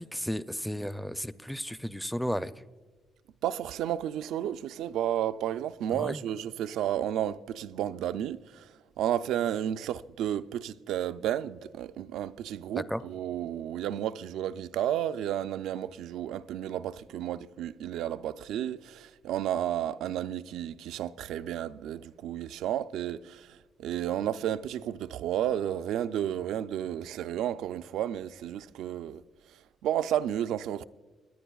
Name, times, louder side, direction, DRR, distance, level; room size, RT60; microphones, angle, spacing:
voice 1, 0.0-2.5 5.9-6.2 12.7-13.0, equal, ahead, 0.4 m, -33 dB
voice 2, 3.4-30.8, right 11 dB, 85° right, 0.3 m, -32 dB
24.0 x 9.9 x 2.3 m
cardioid pair, 90°, 0 cm